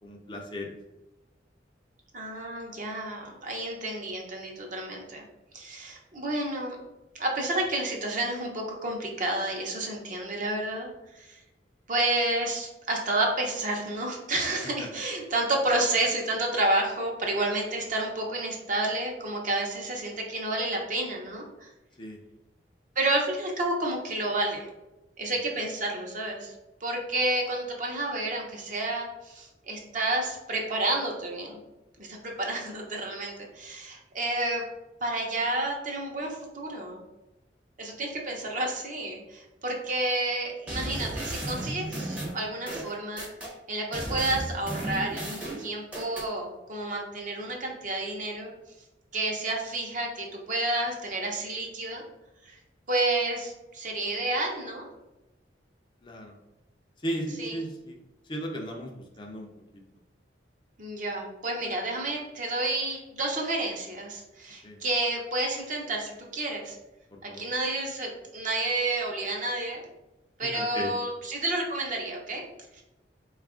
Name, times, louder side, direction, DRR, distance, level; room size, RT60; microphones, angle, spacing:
voice 1, 0.0-0.7 14.8-14.9 22.0-22.2 56.0-56.4 57.0-58.0 58.2-59.5 64.6-64.8 67.1-67.5 70.4-70.9, equal, 25° left, 0 dB, 0.5 m, -36 dB
voice 2, 2.1-5.2 5.5-6.8 7.1-10.9 11.1-11.4 11.9-21.7 23.0-24.7 25.2-26.5 26.8-31.6 32.0-34.6 35.0-37.0 37.8-48.5 49.1-52.0 52.5-52.6 52.9-54.9 57.4-57.6 60.8-66.8 67.2-69.8 70.4-72.4 72.7-72.8, right 2 dB, 45° right, 0 dB, 0.8 m, -30 dB
sound 1, 40.7-43.5 43.9-46.3, right 1 dB, 5° right, 0.7 m, -34 dB
4.0 x 2.4 x 3.6 m, 0.99 s
head